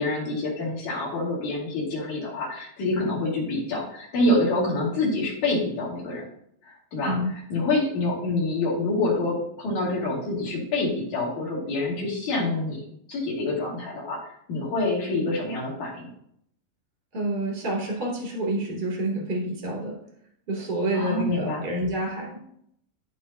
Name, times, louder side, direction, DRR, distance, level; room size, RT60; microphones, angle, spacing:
voice 1, 0.0-6.3 6.6-12.8 13.1-14.2 14.5-16.1 20.9-21.7, left 2 dB, 50° left, -5 dB, 3.3 m, -27 dB
voice 2, 17.1-20.0 20.5-22.4, right 1 dB, 15° right, -2 dB, 1.8 m, -28 dB
13.0 x 4.9 x 2.8 m, 0.71 s
omnidirectional pair, 5.1 m